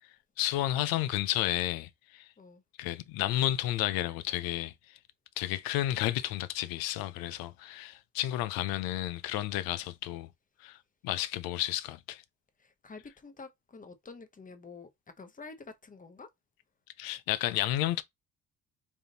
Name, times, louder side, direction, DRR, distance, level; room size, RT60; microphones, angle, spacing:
voice 1, 0.4-2.3 2.8-4.7 5.4-10.3 10.6-10.8 11.0-12.2 17.0-18.0, left 14 dB, 90° left, 0.6 m, -31 dB
voice 2, 12.6-16.3, left 4 dB, 25° left, 1.0 m, -48 dB
3.6 x 2.5 x 4.0 m
cardioid pair, 85°, 34 cm